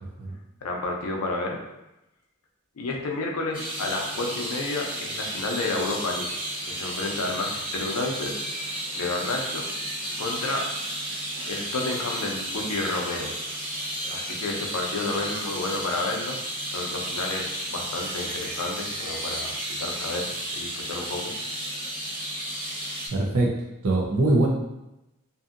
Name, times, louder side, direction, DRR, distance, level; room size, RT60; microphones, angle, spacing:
voice 1, 0.6-1.6 2.8-6.3 6.7-9.6 10.2-10.7 11.5-13.3 14.1-16.4 16.7-21.3, left 2 dB, 90° left, 1 dB, 0.5 m, -31 dB
sound 1, 3.5-23.1, right 1 dB, 25° right, 0.6 m, -33 dB
voice 2, 23.1-23.5 23.8-24.5, right 2 dB, 75° right, 0 dB, 0.6 m, -22 dB
2.6 x 2.6 x 2.4 m, 0.94 s
head